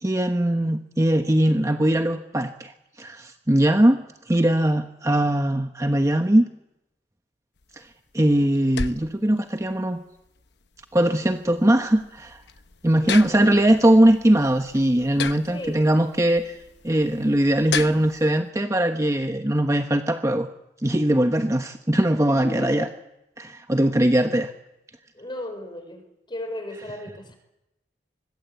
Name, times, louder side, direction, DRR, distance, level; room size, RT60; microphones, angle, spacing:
voice 1, 0.0-2.7 3.0-4.0 4.3-6.4 7.8-7.9 8.1-10.0 10.9-12.4 12.8-16.6 16.8-20.5 20.8-22.9 23.4-24.5, right 1 dB, 20° right, 6 dB, 1.1 m, -20 dB
sound 1, 7.6-18.3, left 5 dB, 70° left, 1.0 m, -36 dB
voice 2, 13.0-13.5 15.5-15.9 22.2-23.0 25.1-27.4, left 1 dB, 25° left, 7 dB, 5.2 m, -36 dB
25.0 x 21.5 x 8.2 m, 0.89 s
head